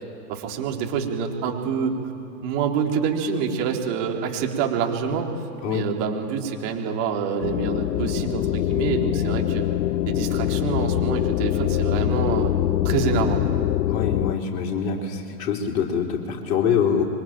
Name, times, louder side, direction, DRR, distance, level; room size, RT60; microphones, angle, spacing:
voice 1, 0.3-1.9 2.4-5.3 5.7-9.6 10.1-12.5 12.8-13.6, right 6 dB, 45° right, 1 dB, 4.0 m, -26 dB
sound 1, 7.4-14.3, left 13 dB, 85° left, 0.5 m, -24 dB
voice 2, 13.8-17.0, left 7 dB, 50° left, 0 dB, 4.4 m, -24 dB
25.5 x 24.0 x 9.1 m, 2.6 s
figure-of-eight pair, 100°, 49 cm